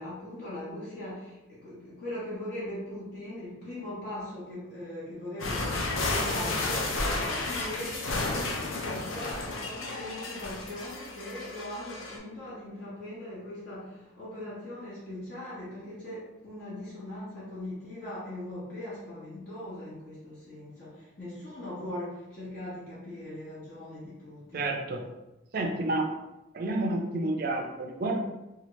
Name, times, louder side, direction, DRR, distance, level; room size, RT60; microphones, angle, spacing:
voice 1, 0.0-24.8 25.8-26.0, left 1 dB, 50° left, -11 dB, 1.1 m, -40 dB
sound 1, 5.4-12.2, left 2 dB, 75° left, 0.5 m, -32 dB
voice 2, 24.5-25.1 25.5-26.1 26.5-28.2, right 2 dB, 45° right, 3 dB, 0.4 m, -30 dB
2.9 x 2.4 x 3.0 m, 0.97 s
head